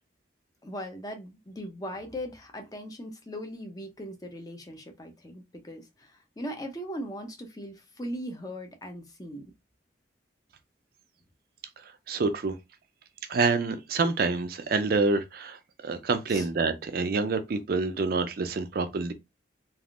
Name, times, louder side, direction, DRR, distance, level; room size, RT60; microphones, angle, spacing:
voice 1, 0.6-9.4 16.3-16.5, equal, 20° left, 0.5 m, -39 dB
voice 2, 12.1-12.6 13.3-19.1, right 4 dB, 50° right, 0.4 m, -27 dB
3.4 x 2.4 x 2.4 m
head